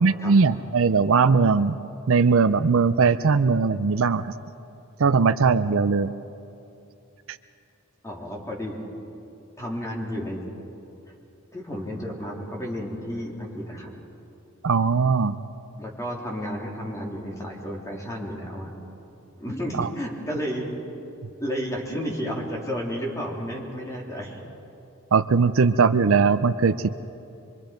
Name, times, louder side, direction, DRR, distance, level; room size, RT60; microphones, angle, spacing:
voice 1, 0.0-1.8 2.1-4.2 5.0-6.1 14.6-15.4 19.8-19.9 25.1-26.9, right 5 dB, 70° right, 12 dB, 0.6 m, -20 dB
voice 2, 8.0-8.8 9.6-10.4 11.5-13.9 15.8-18.7 19.4-20.7 21.4-24.4, equal, 15° left, -2 dB, 3.5 m, -32 dB
25.0 x 24.5 x 5.2 m, 2.8 s
head